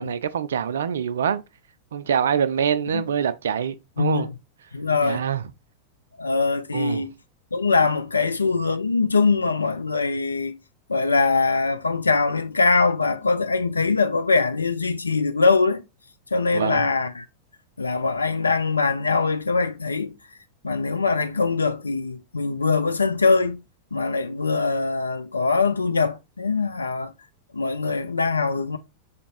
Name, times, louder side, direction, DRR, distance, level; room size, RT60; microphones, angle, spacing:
voice 1, 0.0-1.4 1.9-4.3 5.0-5.4 6.7-7.0 16.5-16.8, right 8 dB, 65° right, 0.3 m, -25 dB
voice 2, 4.0-4.3 4.7-5.2 6.2-7.1 7.5-10.5 10.9-15.8 16.3-17.2 17.8-20.1 20.6-23.6 23.9-27.1 27.5-28.8, left 4 dB, 80° left, 0.4 m, -22 dB
5.0 x 2.6 x 3.0 m
figure-of-eight pair, 90°, 0 cm